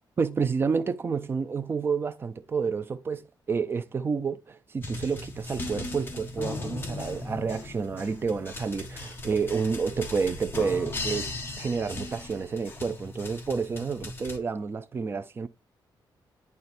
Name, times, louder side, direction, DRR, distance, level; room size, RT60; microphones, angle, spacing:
voice 1, 0.2-3.2 3.5-11.3 11.6-15.5, right 5 dB, 30° right, 0.6 m, -29 dB
sound 1, 4.8-14.4, left 2 dB, 25° left, 1.3 m, -37 dB
9.5 x 3.2 x 4.3 m
wide cardioid pair, 165°, 8 cm